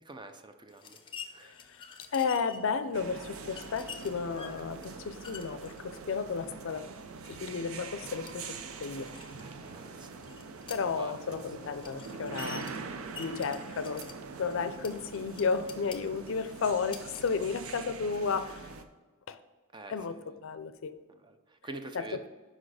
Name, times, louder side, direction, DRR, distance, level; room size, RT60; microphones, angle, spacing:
voice 1, 0.0-1.0 1.3-1.6 9.4-10.2 11.0-11.3 19.7-20.2 21.1-22.2, right 2 dB, 20° right, 7 dB, 0.5 m, -46 dB
sound 1, 0.7-18.6, left 6 dB, 25° left, 0.6 m, -50 dB
voice 2, 1.4-1.9 2.1-6.9 7.3-9.1 10.7-12.7 13.2-14.1 14.4-18.7 19.3-19.4 19.9-20.9 21.9-22.1, left 5 dB, 65° left, 12 dB, 0.5 m, -33 dB
sound 2, 2.9-18.8, right 4 dB, 90° right, 0.6 m, -44 dB
6.4 x 5.1 x 4.8 m, 1.3 s
head